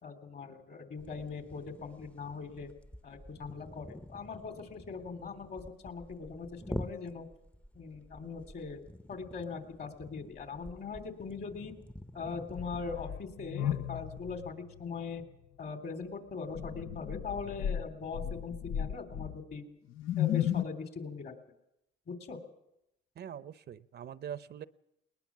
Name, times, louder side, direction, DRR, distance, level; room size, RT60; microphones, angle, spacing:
voice 1, 0.0-2.7 3.0-7.3 7.7-8.8 9.1-11.7 12.1-14.5 14.8-15.2 15.6-19.6 20.2-21.3 22.1-22.4, left 5 dB, 55° left, 7 dB, 3.3 m, -41 dB
sound 1, 1.0-14.5, left 1 dB, 5° left, 0.7 m, -48 dB
sound 2, 12.6-15.0 15.3-15.4 16.5-19.6 19.9-20.6, left 10 dB, 80° left, 0.7 m, -34 dB
voice 2, 23.2-24.7, right 9 dB, 55° right, 16 dB, 0.7 m, -43 dB
20.5 x 20.0 x 7.3 m, 0.82 s
cardioid pair, 90°, 20 cm